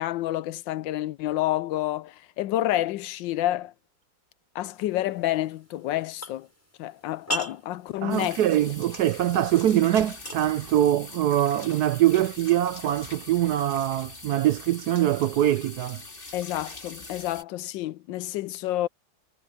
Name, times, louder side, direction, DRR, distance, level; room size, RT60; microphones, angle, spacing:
voice 1, 0.0-3.7 4.5-6.5 6.8-8.4 16.3-18.9, left 14 dB, 75° left, 1.3 m, -29 dB
sound 1, 4.7-14.2, right 1 dB, 5° left, 5.6 m, -42 dB
voice 2, 8.0-16.0, right 12 dB, 70° right, 1.0 m, -23 dB
sound 2, 8.1-17.4, left 3 dB, 25° left, 2.6 m, -43 dB
omnidirectional pair, 2.1 m